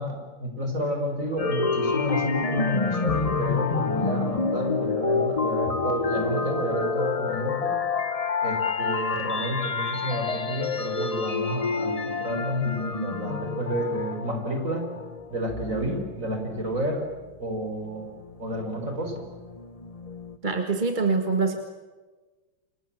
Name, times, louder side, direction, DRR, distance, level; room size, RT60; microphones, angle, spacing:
voice 1, 0.0-7.8 8.4-14.9 15.3-17.0 17.4-18.1 18.4-19.2, equal, 40° right, 4 dB, 5.1 m, -30 dB
sound 1, 1.4-17.1 17.6-20.4, left 4 dB, 35° left, 0.5 m, -28 dB
voice 2, 20.4-21.6, right 4 dB, 25° right, 5 dB, 1.7 m, -24 dB
29.0 x 26.0 x 7.4 m, 1.3 s
omnidirectional pair, 2.1 m